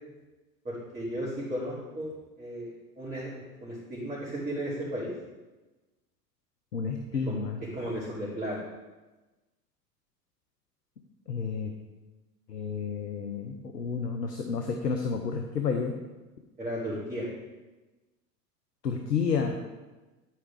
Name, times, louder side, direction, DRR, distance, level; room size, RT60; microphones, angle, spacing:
voice 1, 0.6-5.1 7.2-7.4 7.7-8.6 16.6-17.3, equal, 15° right, -10 dB, 2.9 m, -35 dB
voice 2, 6.7-7.6 11.3-11.7 12.5-16.0 18.8-19.5, left 5 dB, 75° left, 4 dB, 0.9 m, -30 dB
11.0 x 4.8 x 4.7 m, 1.2 s
figure-of-eight pair, 85°, 49 cm